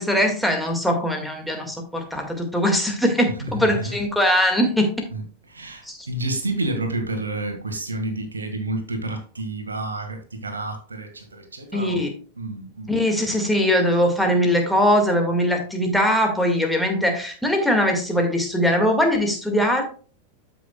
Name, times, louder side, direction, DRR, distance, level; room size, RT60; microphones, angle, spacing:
voice 1, 0.0-4.9 5.9-6.1 11.7-12.1 12.9-19.8, equal, ahead, 2 dB, 1.9 m, -21 dB
voice 2, 3.4-4.0 5.1-5.2 5.5-12.0 12.4-13.0, right 2 dB, 75° right, 5 dB, 1.7 m, -30 dB
13.0 x 5.9 x 2.3 m, 0.41 s
figure-of-eight pair, 90°, 0 cm